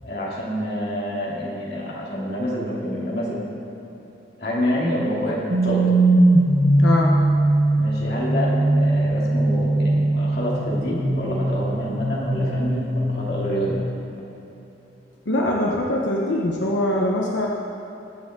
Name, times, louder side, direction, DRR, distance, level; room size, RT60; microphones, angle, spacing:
voice 1, 0.0-3.4 4.4-5.9 7.8-13.8, equal, 60° left, -5 dB, 2.8 m, -27 dB
sound 1, 5.5-13.7, right 2 dB, 50° right, 1.4 m, -20 dB
voice 2, 6.8-7.1 15.3-17.5, left 1 dB, 85° left, -2 dB, 1.0 m, -22 dB
20.5 x 7.5 x 3.8 m, 2.9 s
head